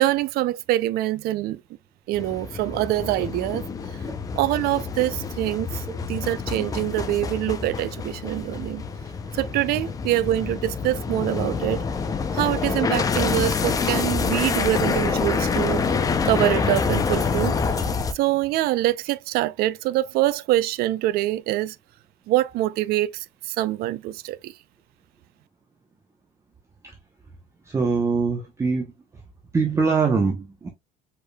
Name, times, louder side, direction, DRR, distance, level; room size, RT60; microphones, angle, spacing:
voice 1, 0.0-1.6 2.1-3.6 4.4-8.8 9.3-11.8 12.3-15.8 16.2-17.5 18.1-21.8 22.3-24.5, right 15 dB, 55° right, 0.5 m, -24 dB
sound 1, 2.1-18.1, left 5 dB, 20° left, 0.5 m, -26 dB
voice 2, 27.6-29.2 29.5-30.7, right 4 dB, 15° right, 0.8 m, -23 dB
5.0 x 4.6 x 2.2 m
cardioid pair, 170°, 19 cm